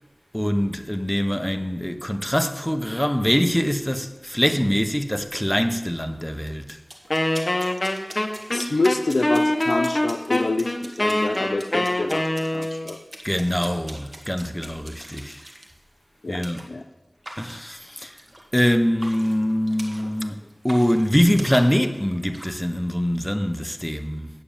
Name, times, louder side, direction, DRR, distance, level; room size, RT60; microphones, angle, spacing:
voice 1, 0.3-6.7 13.2-15.4 16.3-16.6 17.4-18.1 18.5-20.4 20.6-24.3, equal, 10° left, 0.9 m, -23 dB
sound 1, 6.5-15.7 16.4-16.7 17.2-18.7 19.0-20.2 20.5-22.6, right 1 dB, 40° right, 1.7 m, -42 dB
Wind instrument woodwind instrument, 7.1-12.9, left 1 dB, 35° left, 1.2 m, -24 dB
voice 2, 8.5-12.2 12.5-13.0 16.2-16.9, left 2 dB, 80° left, 0.7 m, -27 dB
9.5 x 8.5 x 7.0 m
wide cardioid pair, 50°, 0 cm